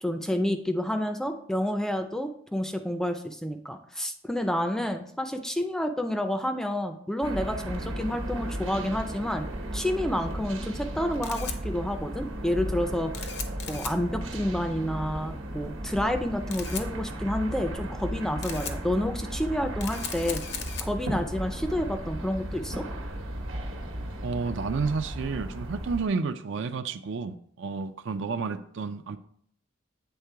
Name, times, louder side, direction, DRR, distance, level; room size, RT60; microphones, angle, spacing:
voice 1, 0.0-9.5 9.7-13.3 13.7-20.4 20.8-22.8, left 1 dB, 5° left, 0.4 m, -29 dB
sound 1, 7.2-26.1, right 1 dB, 85° right, 1.2 m, -35 dB
Camera, 10.8-24.2, left 7 dB, 60° left, 0.7 m, -42 dB
voice 2, 24.2-29.2, right 4 dB, 65° right, 0.4 m, -31 dB
8.1 x 3.7 x 4.6 m
head